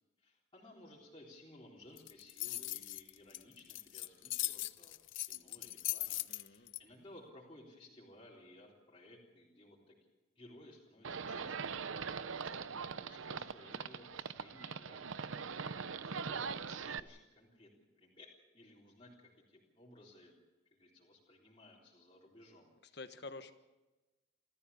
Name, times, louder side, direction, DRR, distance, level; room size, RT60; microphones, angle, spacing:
voice 1, 0.2-9.9 10.4-12.1 12.4-15.5 16.0-17.7 18.0-18.3 18.5-20.4 20.7-22.7, left 1 dB, 25° left, -5 dB, 3.8 m, -58 dB
sound 1, 2.0-6.8, left 17 dB, 80° left, 0.7 m, -39 dB
voice 2, 6.3-6.7 15.6-16.0 22.9-23.5, left 3 dB, 55° left, 9 dB, 1.3 m, -50 dB
Livestock farm animals working animals, 11.0-17.0, right 5 dB, 85° right, 0.8 m, -41 dB
28.5 x 14.0 x 7.0 m, 1.1 s
head